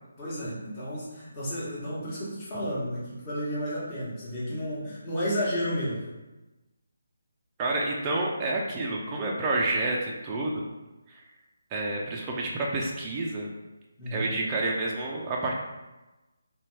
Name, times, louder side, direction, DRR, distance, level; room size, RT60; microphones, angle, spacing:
voice 1, 0.2-6.0 14.0-14.3, equal, 20° left, -10 dB, 1.1 m, -32 dB
voice 2, 7.6-10.7 11.1-11.2 11.7-13.5 14.1-15.5, right 2 dB, 20° right, -3 dB, 0.4 m, -29 dB
2.8 x 2.2 x 3.1 m, 1.1 s
figure-of-eight pair, 155°, 0 cm